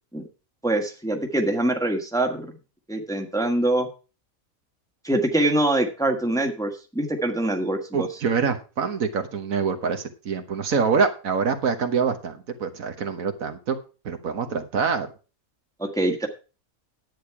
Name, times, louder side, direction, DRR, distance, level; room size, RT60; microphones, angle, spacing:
voice 1, 0.6-2.4 2.9-3.9 5.0-8.1 15.8-16.3, right 1 dB, 5° left, 4 dB, 1.2 m, -24 dB
voice 2, 7.9-13.8 14.0-15.1, right 5 dB, 75° right, 7 dB, 1.6 m, -25 dB
10.0 x 8.7 x 4.7 m, 0.34 s
omnidirectional pair, 1.5 m